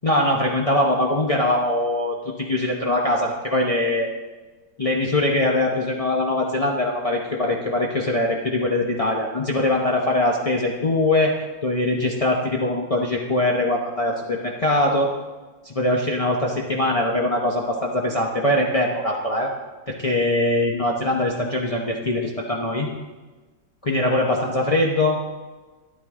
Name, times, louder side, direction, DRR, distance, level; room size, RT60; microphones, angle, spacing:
voice 1, 0.0-4.1 4.8-11.3 11.6-15.1 15.6-19.5 19.9-22.9 23.8-25.2, left 1 dB, 50° left, -1 dB, 0.4 m, -22 dB
12.5 x 11.0 x 3.7 m, 1.3 s
omnidirectional pair, 2.0 m